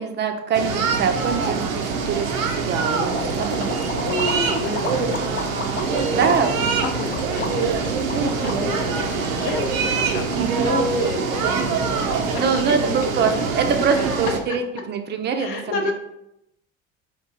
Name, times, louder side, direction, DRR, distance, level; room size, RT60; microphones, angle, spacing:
voice 1, 0.0-3.9 6.0-6.6 8.3-8.5 10.3-10.7 12.2-15.9, right 6 dB, 30° right, 6 dB, 0.4 m, -24 dB
sound 1, 0.5-14.4, right 5 dB, 85° right, 0.5 m, -24 dB
sound 2, 3.1-10.4, left 4 dB, 30° left, 0.5 m, -33 dB
voice 2, 3.9-5.5 5.8-6.3 7.0-13.4 13.9-14.0 14.5-14.6 15.4-15.9, left 3 dB, 65° left, 4 dB, 0.7 m, -31 dB
sound 3, 5.9-11.6, right 2 dB, 15° left, 0.9 m, -38 dB
2.9 x 2.4 x 3.6 m, 0.85 s
hypercardioid pair, 65°, 40 cm